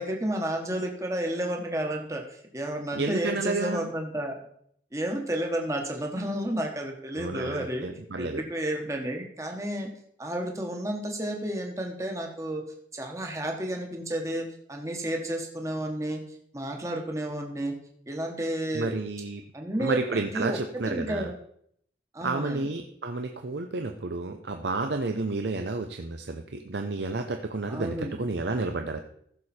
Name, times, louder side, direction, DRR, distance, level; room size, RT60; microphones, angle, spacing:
voice 1, 0.0-4.4 4.9-7.9 8.2-9.9 10.2-12.6 12.9-16.2 16.5-17.7 18.1-19.0 19.5-20.0 20.3-20.6 20.9-21.3 22.1-22.7 27.7-28.2, right 1 dB, 15° right, 2 dB, 1.3 m, -31 dB
voice 2, 2.9-3.9 7.1-8.4 18.7-19.4 19.8-21.3 22.2-29.0, right 3 dB, 80° right, 6 dB, 0.8 m, -31 dB
15.0 x 6.7 x 4.3 m, 0.68 s
head